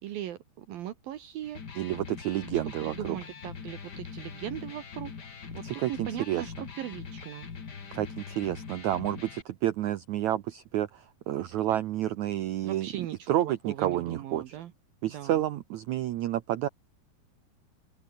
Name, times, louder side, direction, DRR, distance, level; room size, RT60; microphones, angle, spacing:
voice 1, 0.0-1.6 2.8-5.1 5.5-7.5 12.6-14.7 15.1-15.4, right 12 dB, 70° right, 3.1 m, -39 dB
Electric guitar, 1.4-9.4, left 6 dB, 35° left, 1.8 m, -42 dB
voice 2, 1.8-3.2 5.6-6.4 7.9-12.9 13.3-14.4 15.0-16.7, right 13 dB, 90° right, 1.6 m, -30 dB
open air
omnidirectional pair, 4.6 m